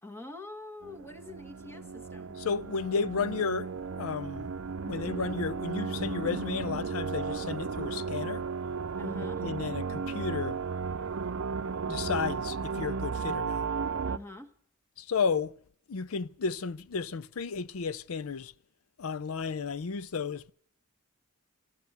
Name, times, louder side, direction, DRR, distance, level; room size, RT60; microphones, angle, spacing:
voice 1, 0.0-2.4 9.0-9.5 14.0-14.5, left 2 dB, 10° left, 1.4 m, -45 dB
sound 1, 0.8-14.2, right 5 dB, 70° right, 0.6 m, -34 dB
voice 2, 2.4-3.7 4.0-4.5 4.9-8.5 9.2-10.6 11.9-13.7 15.0-15.6 15.9-18.5 19.0-20.5, left 5 dB, 80° left, 0.5 m, -33 dB
13.0 x 13.0 x 8.0 m
head